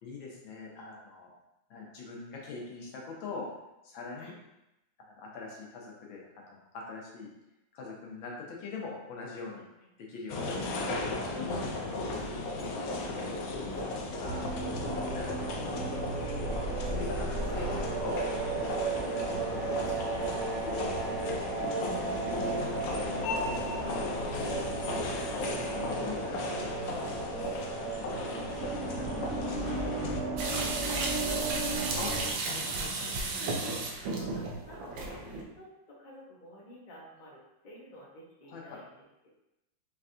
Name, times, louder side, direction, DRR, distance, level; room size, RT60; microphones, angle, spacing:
voice 1, 0.0-1.3 1.7-3.5 3.8-4.3 5.0-7.3 7.7-9.7 10.0-10.5 10.8-11.3 14.2-15.4 15.6-16.1 16.8-18.3 18.9-21.6 26.0-26.3 32.0-32.1 32.4-33.1 38.5-38.8, left 3 dB, 90° left, -2 dB, 1.7 m, -43 dB
sound 1, 10.3-30.2, left 2 dB, 75° left, 0.8 m, -35 dB
voice 2, 12.1-14.3 22.5-23.8 24.2-25.9 26.3-27.8 28.2-29.9 30.2-32.3 33.3-38.9 39.2-39.3, equal, 40° left, -4 dB, 0.7 m, -50 dB
sound 2, 14.2-32.3, right 3 dB, 70° right, 0.6 m, -35 dB
sound 3, 30.4-35.4, right 3 dB, 90° right, 1.4 m, -34 dB
4.6 x 3.3 x 2.5 m, 0.92 s
omnidirectional pair, 2.0 m